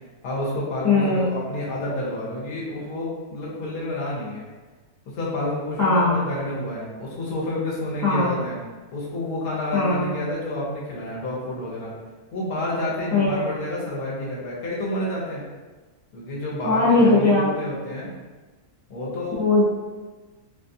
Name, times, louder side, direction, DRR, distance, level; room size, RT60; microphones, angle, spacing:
voice 1, 0.2-4.5 5.1-8.6 8.9-11.9 12.3-15.4 16.1-18.1 18.9-19.4, left 1 dB, 75° left, -6 dB, 1.5 m, -29 dB
voice 2, 0.8-1.3 5.8-6.1 8.0-8.3 9.7-10.1 13.1-13.4 16.6-17.5 19.4-19.6, left 3 dB, 15° left, -8 dB, 0.5 m, -19 dB
3.9 x 2.4 x 2.7 m, 1.3 s
omnidirectional pair, 1.6 m